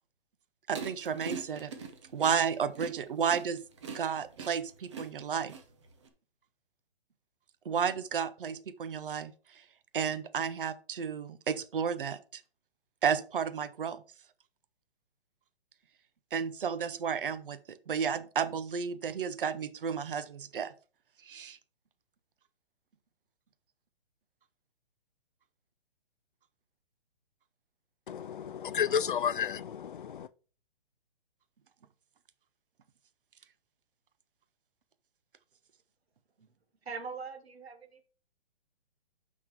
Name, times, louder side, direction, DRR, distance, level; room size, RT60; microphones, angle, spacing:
sound 1, 0.7-6.1, right 5 dB, 30° right, 1.0 m, -42 dB
voice 1, 0.7-1.7 2.1-3.6 3.9-5.5 7.6-9.6 9.9-12.4 13.0-14.0 16.3-20.7 21.2-21.6, right 7 dB, 60° right, 0.9 m, -32 dB
voice 2, 28.1-30.3, left 8 dB, 55° left, 0.4 m, -32 dB
voice 3, 36.8-38.0, right 5 dB, 80° right, 1.8 m, -42 dB
6.0 x 5.9 x 4.8 m
hypercardioid pair, 175°, 31 cm